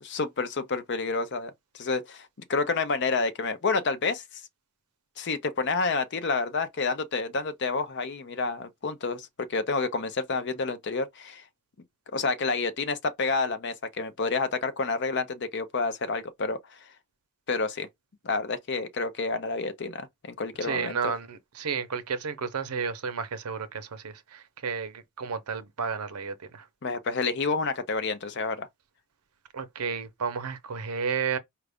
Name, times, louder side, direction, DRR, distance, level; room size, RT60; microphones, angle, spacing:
voice 1, 0.0-4.2 5.2-11.4 12.1-16.6 17.5-17.9 18.2-21.1 26.8-28.7, left 4 dB, 50° left, 0.6 m, -29 dB
voice 2, 20.6-24.9 25.2-26.6 29.5-31.4, right 6 dB, 85° right, 0.7 m, -32 dB
4.6 x 2.5 x 3.4 m
head